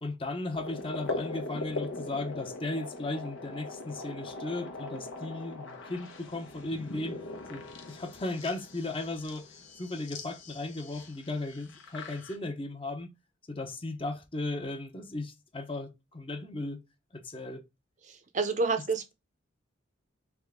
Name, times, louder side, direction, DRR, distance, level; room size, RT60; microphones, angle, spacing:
voice 1, 0.0-7.2 7.5-9.5 9.8-13.1 13.5-16.8 17.1-17.6, left 2 dB, 25° left, 0.7 m, -36 dB
sound 1, 0.5-12.4, left 2 dB, 85° left, 1.0 m, -41 dB
voice 2, 18.1-19.1, right 4 dB, 40° right, 0.6 m, -29 dB
3.5 x 3.3 x 3.6 m
head